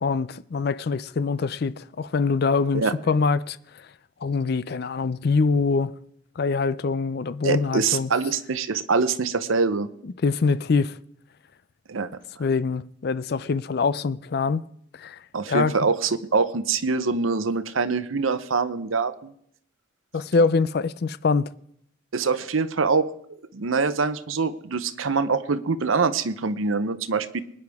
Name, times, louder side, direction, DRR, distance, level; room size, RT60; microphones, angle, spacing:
voice 1, 0.0-3.6 4.2-5.9 6.4-8.1 10.2-10.9 12.4-14.6 15.0-15.2 15.5-15.7 20.1-21.5, left 4 dB, 50° left, 0.4 m, -24 dB
voice 2, 7.4-9.9 11.9-12.1 15.3-19.3 22.1-23.1 23.5-27.4, right 4 dB, 85° right, 0.8 m, -24 dB
21.0 x 9.8 x 3.5 m
head